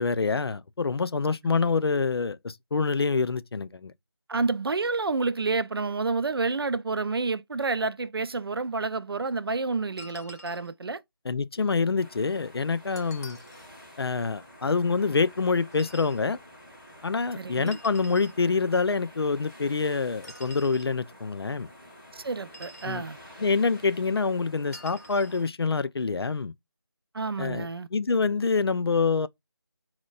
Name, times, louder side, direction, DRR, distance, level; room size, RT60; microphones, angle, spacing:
voice 1, 0.0-3.9 11.2-13.4 14.0-16.4 17.0-21.7 22.8-23.0 23.4-26.5 27.4-29.3, left 4 dB, 80° left, 0.4 m, -26 dB
voice 2, 4.3-11.0 17.4-17.8 22.1-23.2 27.1-27.9, right 3 dB, 70° right, 0.4 m, -29 dB
sound 1, 10.0-10.7 13.0-13.7 15.7-16.2 17.7-18.4 20.2-20.9 22.4-23.0 24.7-25.4, equal, 40° left, 0.7 m, -47 dB
sound 2, 12.0-25.5, equal, 5° right, 0.6 m, -50 dB
4.2 x 2.1 x 2.3 m
figure-of-eight pair, 170°, 13 cm